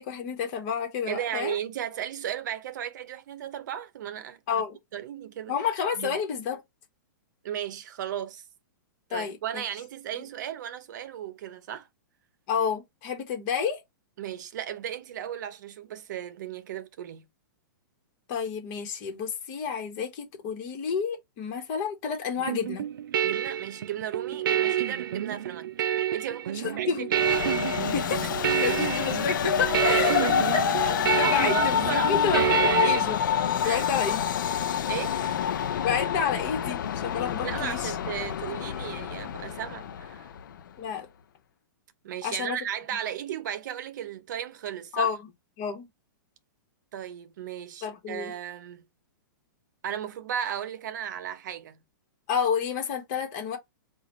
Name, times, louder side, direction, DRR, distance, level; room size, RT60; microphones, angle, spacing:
voice 1, 0.0-1.6 4.5-4.8 5.5-6.6 9.1-9.6 12.5-13.8 18.3-22.8 26.5-27.1 27.8-30.3 30.5-33.2 33.6-34.2 35.8-37.9 40.8-41.1 42.2-42.6 44.9-45.2 45.6-45.9 47.8-48.3 52.3-53.6, left 7 dB, 40° left, 1.4 m, -30 dB
voice 2, 1.1-4.6 4.9-5.6 6.0-6.2 7.4-8.4 9.1-11.9 14.2-17.3 22.4-22.5 23.2-25.7 26.1-27.2 28.7-28.8 29.8-30.3 30.9-32.2 32.6-32.8 33.6-33.8 34.9-35.2 37.4-40.3 42.0-45.1 46.9-48.8 49.8-51.8, right 10 dB, 60° right, 0.7 m, -35 dB
sound 1, 22.5-33.0, right 10 dB, 80° right, 0.4 m, -28 dB
Train, 27.1-40.6, left 9 dB, 70° left, 0.5 m, -27 dB
4.8 x 2.5 x 3.0 m
hypercardioid pair, 145°, 11 cm